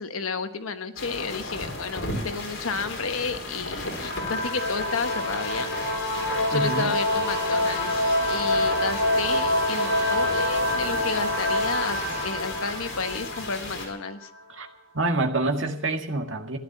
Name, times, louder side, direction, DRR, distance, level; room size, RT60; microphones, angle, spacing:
voice 1, 0.0-5.7 6.5-8.0 8.3-14.3, left 5 dB, 80° left, 8 dB, 1.2 m, -32 dB
sound 1, 1.0-13.9, left 2 dB, 65° left, 4.3 m, -36 dB
sound 2, 3.9-14.3, left 1 dB, 50° left, 5.7 m, -26 dB
voice 2, 6.5-7.0 14.5-14.7 14.9-16.6, right 2 dB, 65° right, 3 dB, 1.9 m, -26 dB
sound 3, 7.0-12.3, right 1 dB, 10° right, 5.9 m, -39 dB
15.5 x 11.0 x 7.3 m, 0.78 s
head